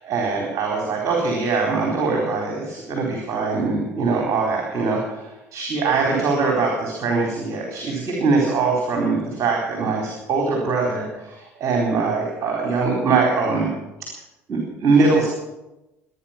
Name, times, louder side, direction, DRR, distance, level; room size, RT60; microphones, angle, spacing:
voice 1, 0.0-13.7 14.5-15.3, right 4 dB, 45° right, 0 dB, 4.3 m, -22 dB
23.0 x 10.0 x 6.0 m, 0.98 s
hypercardioid pair, 60°, 7 cm